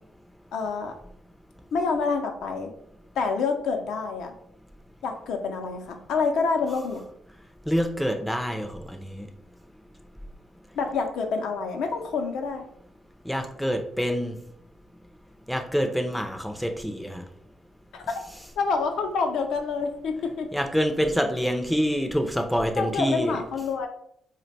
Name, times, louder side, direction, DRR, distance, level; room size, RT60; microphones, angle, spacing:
voice 1, 0.5-0.9 1.7-2.7 3.2-4.3 5.0-7.1 10.8-12.6 17.9-18.1 18.6-20.5 22.8-23.9, left 4 dB, 80° left, 4 dB, 0.4 m, -27 dB
voice 2, 7.7-9.3 13.3-14.3 15.5-17.2 20.5-23.4, equal, ahead, 4 dB, 0.4 m, -26 dB
2.5 x 2.1 x 3.9 m, 0.70 s
cardioid pair, 90°, 0 cm